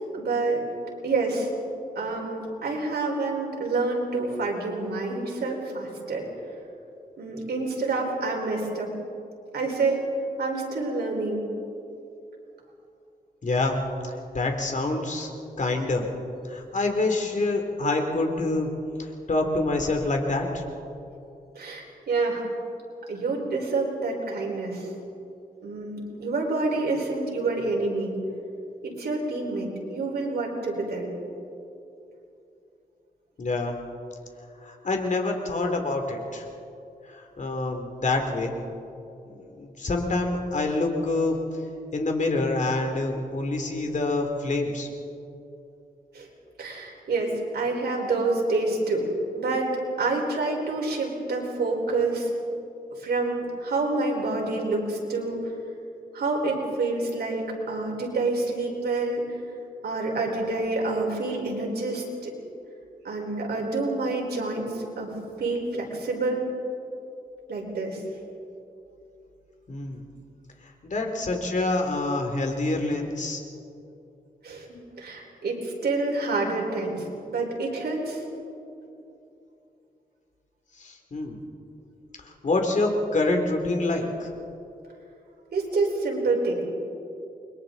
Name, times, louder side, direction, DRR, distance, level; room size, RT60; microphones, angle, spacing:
voice 1, 0.1-0.6 1.0-1.5 1.9-6.2 7.2-8.9 9.5-10.0 10.4-11.5 21.5-22.4 23.1-24.9 25.6-28.1 28.8-31.1 46.1-46.3 46.6-49.0 49.4-52.3 53.0-55.4 56.1-59.2 59.8-62.3 63.0-65.1 65.4-66.4 67.5-68.0 74.4-78.2 85.5-86.6, right 3 dB, 85° right, -1 dB, 4.6 m, -28 dB
voice 2, 13.4-13.8 14.0-15.3 15.6-16.0 16.5-18.7 19.0-20.6 33.4-33.8 34.6-36.4 37.1-38.6 39.4-41.4 41.9-44.9 69.7-70.0 70.8-73.4 80.8-81.4 82.2-84.3, left 2 dB, 50° left, 3 dB, 2.8 m, -26 dB
29.5 x 23.0 x 4.0 m, 2.7 s
wide cardioid pair, 105°, 16 cm